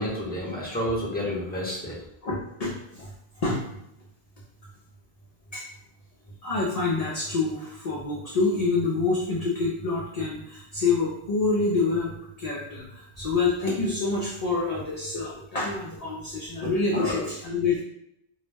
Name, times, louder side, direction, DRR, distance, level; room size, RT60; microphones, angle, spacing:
voice 1, 0.0-2.0 16.9-17.2, equal, 10° left, -6 dB, 0.7 m, -30 dB
voice 2, 2.2-3.1 3.4-3.7 5.5-5.7 6.4-12.1 12.4-17.8, left 3 dB, 50° left, -4 dB, 0.5 m, -27 dB
2.3 x 2.0 x 3.2 m, 0.81 s
omnidirectional pair, 1.0 m